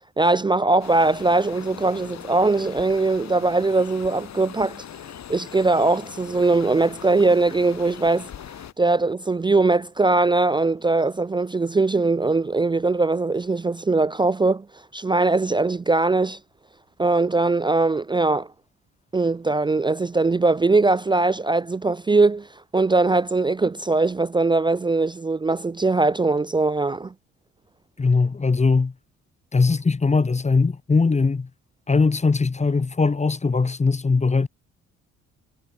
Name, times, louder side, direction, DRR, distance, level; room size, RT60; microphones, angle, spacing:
voice 1, 0.2-4.8 5.3-8.3 8.8-14.7 14.9-16.4 17.0-18.5 19.1-22.5 22.7-27.1, right 3 dB, 15° right, 0.4 m, -21 dB
sound 1, 0.8-8.7, left 10 dB, 65° left, 7.6 m, -40 dB
voice 2, 28.0-28.9 29.5-31.5 31.9-34.5, left 4 dB, 20° left, 1.4 m, -20 dB
cardioid pair, 90°, 30 cm